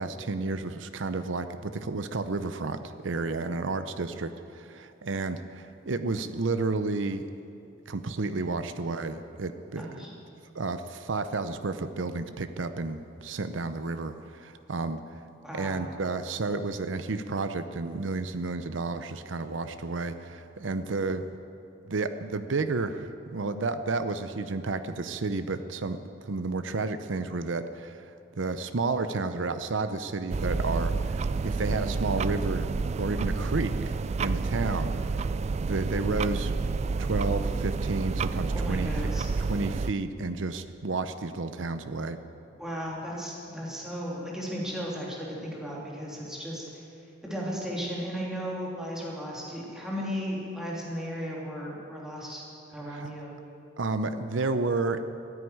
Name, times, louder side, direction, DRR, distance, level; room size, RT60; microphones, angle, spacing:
voice 1, 0.0-7.2 7.9-10.1 10.5-15.2 15.5-21.2 21.9-32.7 33.0-35.2 35.6-36.5 37.0-38.9 39.4-42.2 52.9-53.1 53.8-55.0, right 3 dB, 80° right, 10 dB, 0.7 m, -31 dB
voice 2, 9.8-10.1 15.4-15.8 38.5-39.3 42.6-46.8 47.2-52.4 52.7-53.4, equal, 5° right, -5 dB, 3.3 m, -35 dB
sound 1, 30.3-39.9, right 4 dB, 35° right, 0.3 m, -29 dB
15.5 x 9.5 x 9.4 m, 2.7 s
head